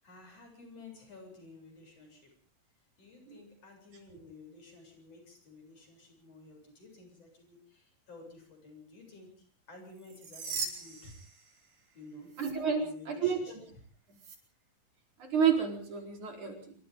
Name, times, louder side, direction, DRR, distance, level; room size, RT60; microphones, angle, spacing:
voice 1, 0.0-2.3 3.0-11.2 12.0-12.4 12.8-13.5, left 3 dB, 45° left, 3 dB, 8.9 m, -52 dB
sound 1, 9.9-11.9 12.3-12.5 14.1-14.4, right 4 dB, 90° right, 6.5 m, -40 dB
voice 2, 12.4-13.6 15.2-16.7, right 7 dB, 55° right, 2 dB, 5.8 m, -30 dB
26.5 x 25.0 x 3.8 m, 0.43 s
omnidirectional pair, 4.1 m